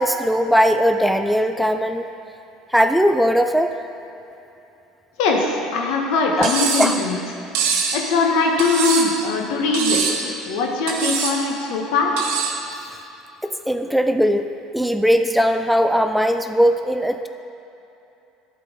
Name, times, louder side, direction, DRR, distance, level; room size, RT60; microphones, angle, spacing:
voice 1, 0.0-2.1 2.7-3.8 6.4-7.0 13.4-17.3, equal, ahead, 7 dB, 0.3 m, -19 dB
voice 2, 5.2-7.2 7.9-12.2, left 3 dB, 75° left, 1 dB, 1.1 m, -21 dB
Cutlery silverware, 6.4-7.0 7.6-8.0 8.6-9.2 9.7-10.2 10.9-11.4 12.2-12.6, right 6 dB, 80° right, 1.0 m, -23 dB
11.0 x 4.6 x 3.8 m, 2.8 s
supercardioid pair, 100°, 0 cm